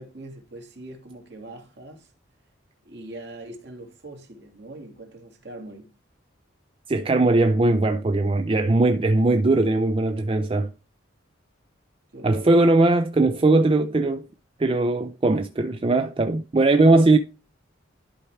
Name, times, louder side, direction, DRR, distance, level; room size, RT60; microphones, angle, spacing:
voice 1, 0.0-2.1 2.8-6.0 12.1-12.7, right 1 dB, 55° right, 2.1 m, -42 dB
voice 2, 6.9-10.7 12.2-14.3 14.6-17.2, right 2 dB, 25° right, 0.4 m, -19 dB
11.5 x 4.4 x 3.3 m
head